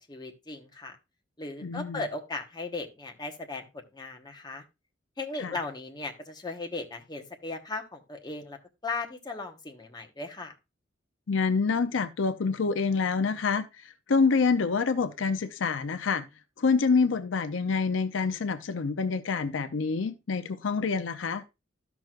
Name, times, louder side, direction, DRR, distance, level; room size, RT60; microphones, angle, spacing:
voice 1, 0.1-1.0 1.4-3.7 3.9-4.6 5.2-8.6 8.8-10.5, left 3 dB, 20° left, 1.2 m, -37 dB
voice 2, 1.6-2.0 5.4-5.5 11.3-16.2 16.6-21.4, left 4 dB, 80° left, 0.6 m, -27 dB
13.0 x 6.0 x 2.4 m
head